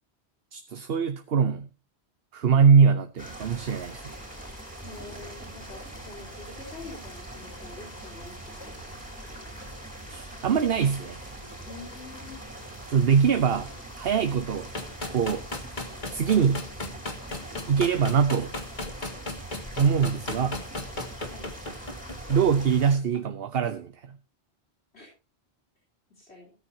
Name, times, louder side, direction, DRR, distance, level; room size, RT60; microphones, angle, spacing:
voice 1, 0.5-1.7 2.3-4.1 10.1-11.3 12.9-13.7 14.0-14.7 15.1-15.4 16.1-16.7 17.7-18.5 19.8-20.6 22.3-24.0, right 6 dB, 70° right, 9 dB, 1.1 m, -23 dB
sound 1, 3.2-22.9, right 1 dB, 5° right, 4.4 m, -42 dB
voice 2, 4.8-9.2 11.7-12.4 21.3-21.5 24.9-25.1 26.1-26.5, left 3 dB, 85° left, -3 dB, 4.3 m, -46 dB
sound 2, 14.8-23.2, left 2 dB, 45° left, 2.0 m, -35 dB
16.5 x 13.5 x 2.9 m, 0.32 s
omnidirectional pair, 1.1 m